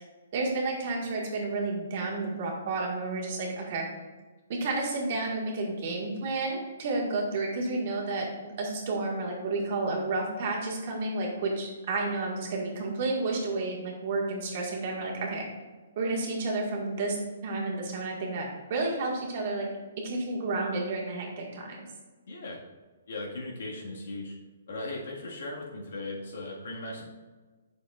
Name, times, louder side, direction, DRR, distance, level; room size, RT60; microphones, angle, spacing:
voice 1, 0.3-3.9 4.5-15.4 15.9-17.2 17.4-19.7 20.0-21.8, right 3 dB, 45° right, -2 dB, 1.8 m, -31 dB
voice 2, 22.3-22.6 23.1-24.4 24.7-27.0, left 2 dB, 65° left, -2 dB, 1.8 m, -38 dB
8.4 x 6.6 x 2.5 m, 1.3 s
hypercardioid pair, 160°, 0 cm